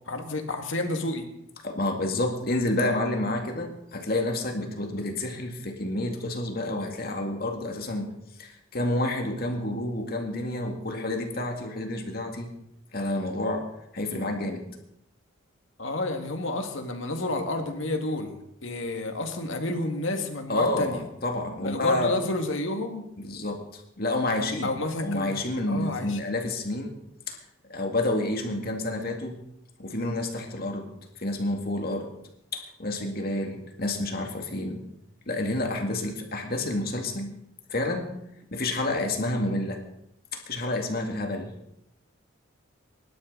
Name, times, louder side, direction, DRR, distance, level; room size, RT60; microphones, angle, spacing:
voice 1, 0.1-1.3 15.8-18.4 18.6-21.0 21.6-23.0 24.6-25.3 25.7-26.2, left 2 dB, 70° left, 4 dB, 2.0 m, -30 dB
voice 2, 1.6-8.1 8.4-12.5 12.9-13.7 13.9-14.7 20.5-22.1 23.2-24.7 25.0-26.9 27.3-27.4 27.7-29.4 29.8-30.9 31.2-32.1 32.5-34.8 35.3-37.3 37.7-38.1 38.5-39.8 40.3-41.5, left 2 dB, 45° left, 3 dB, 2.2 m, -29 dB
24.0 x 11.5 x 4.0 m, 0.81 s
head